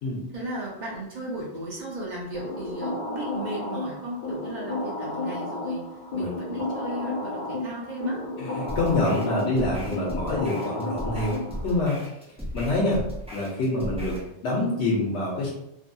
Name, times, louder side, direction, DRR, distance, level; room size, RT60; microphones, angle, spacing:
voice 1, 0.3-5.8 6.1-8.2, right 1 dB, 45° right, -4 dB, 0.8 m, -35 dB
sound 1, 2.3-11.8, left 2 dB, 50° left, 0.7 m, -32 dB
voice 2, 8.4-12.0 12.5-13.0 13.3-14.1 14.4-15.5, left 2 dB, 75° left, -4 dB, 0.9 m, -26 dB
sound 2, 8.7-14.3, equal, 10° right, 0.3 m, -36 dB
2.7 x 2.6 x 2.2 m, 0.81 s
omnidirectional pair, 1.2 m